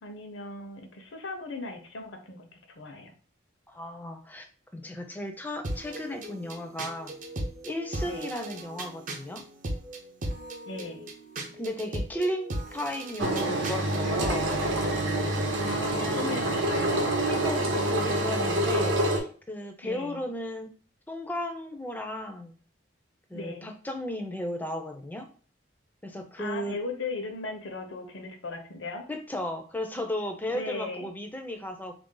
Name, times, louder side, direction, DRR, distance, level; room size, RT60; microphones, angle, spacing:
voice 1, 0.0-3.1 8.0-8.3 10.7-11.1 15.6-17.1 19.8-20.2 23.3-23.7 26.4-29.0 30.5-31.1, left 3 dB, 80° left, 5 dB, 0.7 m, -37 dB
voice 2, 3.7-4.5 4.7-7.1 7.6-9.4 11.6-14.6 15.9-16.5 17.3-20.7 21.1-22.6 23.3-25.3 26.0-26.8 29.1-31.9, left 1 dB, 10° left, 5 dB, 0.4 m, -35 dB
Cool Lofi-ish Beat, 5.6-14.6, right 1 dB, 45° right, 0.5 m, -37 dB
Engine, 13.2-19.2, right 1 dB, 85° right, 0.8 m, -27 dB
3.5 x 2.5 x 3.7 m, 0.42 s
head